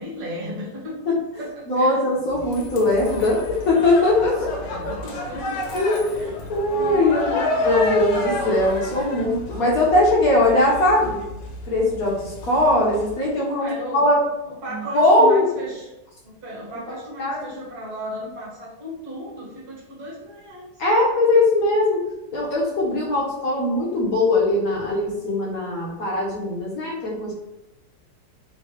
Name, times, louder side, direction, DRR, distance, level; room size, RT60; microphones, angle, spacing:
voice 1, 0.0-2.0 2.3-2.4 4.3-5.6 6.1-6.4 6.7-7.9 13.6-14.2 14.4-15.9 16.2-20.7, equal, 60° right, -5 dB, 1.7 m, -35 dB
voice 2, 1.7-4.5 5.7-7.2 7.6-11.2 11.6-14.2 14.9-15.4 17.2-17.4 20.8-22.0 22.3-27.3, left 2 dB, 60° left, -4 dB, 1.1 m, -20 dB
sound 1, 2.3-13.3, left 1 dB, 75° left, 1.4 m, -30 dB
3.6 x 3.2 x 3.0 m, 0.95 s
omnidirectional pair, 2.0 m